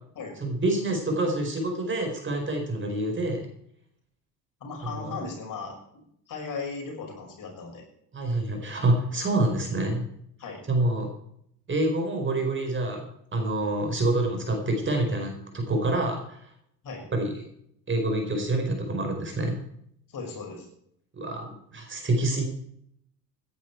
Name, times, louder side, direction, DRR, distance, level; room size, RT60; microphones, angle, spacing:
voice 1, 0.4-3.4 5.0-5.1 8.1-10.1 10.7-11.1 11.7-13.0 13.3-16.4 17.1-17.3 17.9-19.6 21.2-22.5, right 2 dB, 25° right, 3 dB, 4.6 m, -27 dB
voice 2, 4.6-7.8 10.4-10.6 16.8-17.0 20.1-20.7, left 4 dB, 45° left, 1 dB, 6.6 m, -37 dB
17.0 x 10.5 x 4.6 m, 0.69 s
hypercardioid pair, 70°, 47 cm